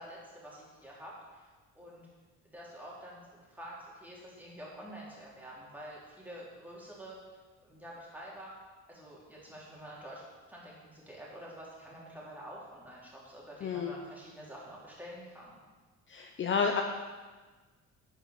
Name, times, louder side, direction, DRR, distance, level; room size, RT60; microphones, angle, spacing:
voice 1, 0.0-1.5 1.8-2.1 2.5-7.2 7.6-8.5 8.9-10.2 10.5-15.5, equal, 5° right, -5 dB, 3.7 m, -48 dB
voice 2, 13.6-13.9 16.1-16.8, left 6 dB, 40° left, 3 dB, 0.9 m, -30 dB
9.3 x 9.0 x 6.8 m, 1.3 s
cardioid pair, 140°, 31 cm